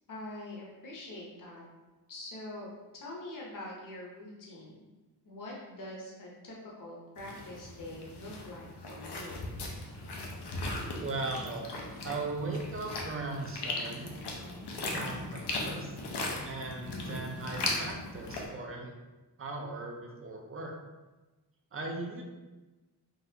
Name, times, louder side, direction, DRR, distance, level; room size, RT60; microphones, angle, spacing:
voice 1, 0.1-1.6 2.1-4.8 5.2-9.4, left 1 dB, 50° left, -4 dB, 0.9 m, -44 dB
sound 1, 7.2-18.5, left 2 dB, 75° left, 0.7 m, -38 dB
voice 2, 11.0-11.7 12.0-14.1 14.9-16.0 16.4-18.9 19.4-20.7 21.7-22.2, right 3 dB, 35° right, 1 dB, 0.5 m, -38 dB
3.9 x 2.4 x 2.8 m, 1.2 s
wide cardioid pair, 110°, 40 cm